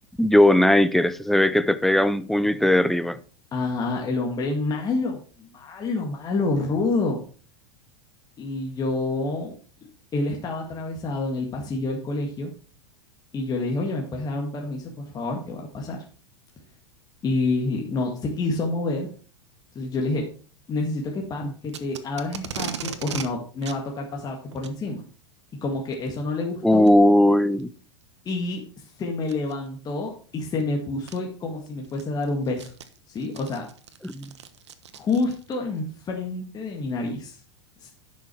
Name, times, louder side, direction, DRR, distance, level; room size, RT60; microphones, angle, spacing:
voice 1, 0.2-3.2 21.4-21.5 26.6-27.7 34.0-34.3, left 1 dB, ahead, 0.5 m, -18 dB
voice 2, 3.5-7.2 8.4-9.5 10.1-12.5 13.3-16.0 17.2-19.1 19.8-20.3 20.7-25.0 25.6-26.9 28.3-32.7 33.1-33.7 34.9-37.4 37.8-37.9, left 3 dB, 25° left, 1.9 m, -28 dB
Packing tape duct tape, 21.7-23.3 23.6-23.8 24.5-24.8 25.9-26.2 26.9-27.0 27.6-27.7 29.2-29.5 30.6-30.7 31.1-31.2 31.7-35.6, right 8 dB, 85° right, 1.1 m, -37 dB
10.5 x 6.4 x 4.5 m
hypercardioid pair, 110°, 14 cm